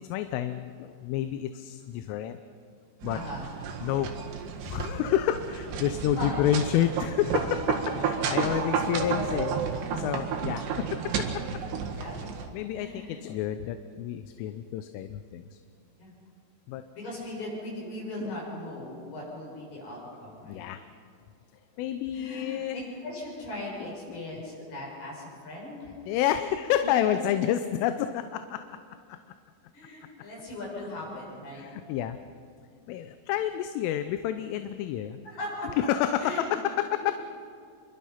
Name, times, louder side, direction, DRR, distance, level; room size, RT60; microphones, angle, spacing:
voice 1, 0.1-2.4 3.0-3.2 3.8-4.1 4.6-9.6 9.9-11.6 12.5-15.5 16.7-16.8 20.4-20.8 21.8-22.8 23.8-24.2 26.1-28.6 29.1-29.2 31.6-32.2 32.9-35.2 35.8-37.2, left 11 dB, 85° left, 9 dB, 3.3 m, -29 dB
sound 1, 3.0-12.5, right 6 dB, 65° right, 3.6 m, -31 dB
voice 2, 3.1-3.5 6.2-6.5 11.9-12.2 12.8-13.3 16.0-16.1 17.0-20.7 22.1-26.0 26.5-27.3 29.7-31.7 35.2-35.7 36.2-36.5 37.2-37.3, left 1 dB, 50° left, -3 dB, 8.8 m, -39 dB
28.0 x 23.5 x 5.8 m, 2.3 s
omnidirectional pair, 5.8 m